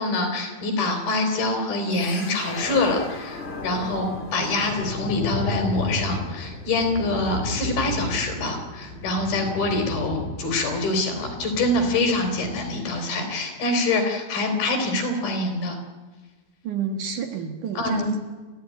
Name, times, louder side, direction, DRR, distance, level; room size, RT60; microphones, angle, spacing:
voice 1, 0.0-15.8 17.8-18.1, left 2 dB, 70° left, 4 dB, 5.7 m, -25 dB
sound 1, 1.9-13.0, left 1 dB, 25° left, 1.6 m, -33 dB
voice 2, 16.6-18.2, right 6 dB, 60° right, 5 dB, 2.7 m, -29 dB
30.0 x 14.5 x 9.6 m, 1.3 s
omnidirectional pair, 4.5 m